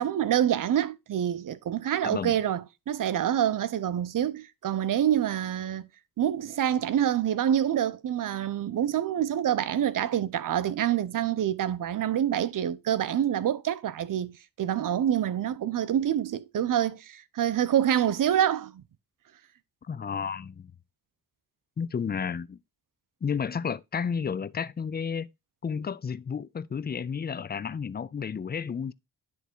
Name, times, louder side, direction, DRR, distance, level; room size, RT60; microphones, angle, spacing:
voice 1, 0.0-5.8 6.2-18.8, right 10 dB, 60° right, 0.7 m, -26 dB
voice 2, 2.0-2.4 19.9-20.6 21.8-22.6 23.2-25.3 25.6-28.9, left 6 dB, 25° left, 0.5 m, -32 dB
10.5 x 3.5 x 4.5 m
cardioid pair, 75°, 37 cm